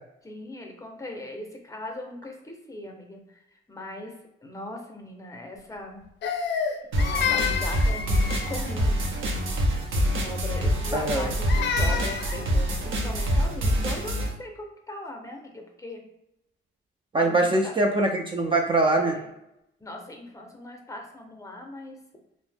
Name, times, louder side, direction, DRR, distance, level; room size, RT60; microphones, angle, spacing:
voice 1, 0.2-3.2 3.7-4.1 4.4-6.0 7.0-9.4 9.7-16.0 17.2-17.8 18.8-19.3 19.8-22.0, left 1 dB, 15° left, 2 dB, 0.6 m, -39 dB
Crying sobbing, 6.2-8.7 11.0-12.4, left 7 dB, 60° left, 0.4 m, -29 dB
sound 1, 6.9-14.3, equal, 80° right, 0.6 m, -25 dB
voice 2, 10.9-11.3 17.1-19.2, right 2 dB, 25° right, 1 dB, 0.4 m, -23 dB
2.6 x 2.0 x 3.3 m, 0.84 s
cardioid pair, 90°, 20 cm